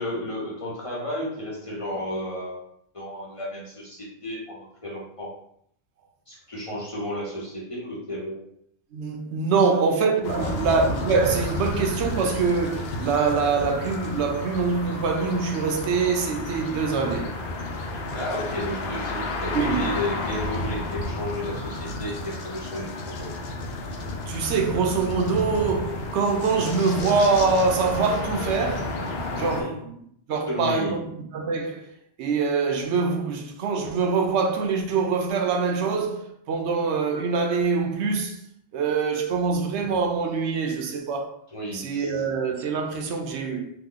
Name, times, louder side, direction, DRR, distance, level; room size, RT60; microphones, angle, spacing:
voice 1, 0.0-2.7 2.9-5.3 6.3-8.5 9.7-9.8 10.4-10.5 18.1-22.9 23.2-23.3 29.4-29.7 30.5-31.1 41.5-42.2, left 1 dB, 35° left, 0.7 m, -33 dB
voice 2, 8.9-17.3 19.5-19.9 24.3-29.0 29.3-29.9 30.3-31.1 31.3-31.9 32.2-38.4 38.7-41.3 41.7-43.7, right 4 dB, 85° right, 0.9 m, -24 dB
sound 1, 10.2-29.6, left 2 dB, 70° left, 0.8 m, -31 dB
2.9 x 2.2 x 3.7 m
omnidirectional pair, 1.1 m